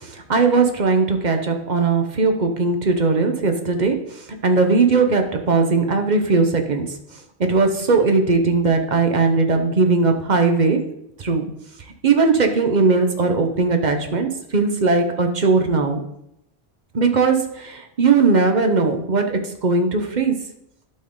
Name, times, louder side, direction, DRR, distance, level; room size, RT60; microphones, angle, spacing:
voice 1, 0.0-7.0 7.4-10.8 11.2-11.4 12.0-16.0 16.9-20.3, right 4 dB, 45° right, 5 dB, 1.0 m, -19 dB
11.5 x 4.4 x 3.9 m, 0.78 s
omnidirectional pair, 1.2 m